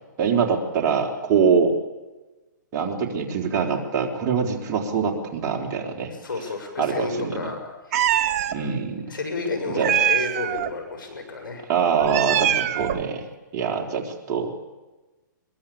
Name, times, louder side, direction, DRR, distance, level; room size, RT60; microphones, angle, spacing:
voice 1, 0.2-1.7 2.7-6.1 6.8-7.4 8.5-9.1 9.7-9.9 11.7-13.2 13.5-14.5, right 6 dB, 30° right, 2 dB, 3.7 m, -24 dB
voice 2, 6.2-7.6 7.9-8.0 9.1-11.7, left 3 dB, 85° left, 5 dB, 6.7 m, -31 dB
Meow, 7.9-8.6 9.8-10.7 11.9-13.1, right 11 dB, 45° right, 1.2 m, -23 dB
22.5 x 22.0 x 8.7 m, 1.2 s
hypercardioid pair, 140°, 11 cm